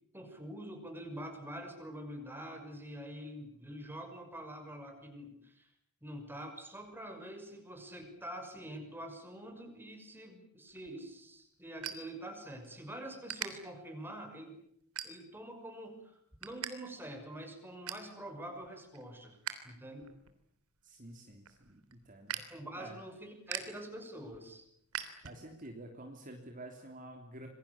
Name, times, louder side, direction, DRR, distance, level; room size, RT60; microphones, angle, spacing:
voice 1, 0.1-5.7 6.0-14.6 15.0-19.4 19.6-20.1 22.5-24.6, right 1 dB, 10° right, 4 dB, 6.2 m, -46 dB
sound 1, 10.7-12.8 13.0-13.5 14.1-14.3 14.8-15.5 15.9-16.7 17.0-17.1 17.5-18.1 18.6-19.5 19.9-25.7, right 9 dB, 70° right, 3.3 m, -44 dB
voice 2, 20.8-22.4 22.8-23.0 25.2-27.5, right 1 dB, 35° right, 3 dB, 3.3 m, -49 dB
27.5 x 22.5 x 8.6 m, 0.73 s
head